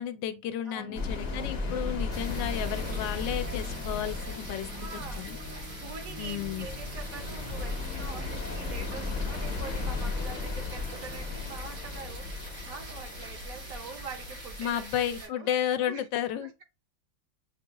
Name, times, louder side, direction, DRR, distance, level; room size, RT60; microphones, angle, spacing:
voice 1, 0.0-4.7 5.2-5.4 6.2-6.7 14.6-16.5, left 10 dB, 90° left, 1.3 m, -32 dB
voice 2, 0.6-1.0 4.7-5.3 5.8-15.5 15.8-16.1 16.4-16.6, right 5 dB, 60° right, 1.1 m, -44 dB
sound 1, 0.8-10.5, left 1 dB, 15° right, 0.6 m, -47 dB
sound 2, 0.9-14.9, left 3 dB, 50° left, 0.8 m, -36 dB
sound 3, 2.1-15.3, right 2 dB, 90° right, 2.7 m, -44 dB
6.7 x 2.3 x 2.8 m
omnidirectional pair, 1.9 m